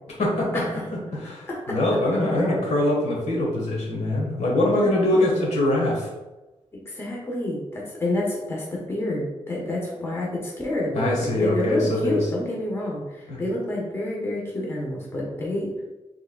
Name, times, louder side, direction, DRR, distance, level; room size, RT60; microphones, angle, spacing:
voice 1, 0.1-0.7 1.1-6.1 10.9-12.3 13.3-13.4, left 1 dB, 80° left, -3 dB, 1.5 m, -23 dB
voice 2, 1.5-1.8 5.1-5.2 6.7-15.7, left 1 dB, 20° left, -4 dB, 1.1 m, -29 dB
6.3 x 3.5 x 2.3 m, 1.1 s
wide cardioid pair, 150°, 11 cm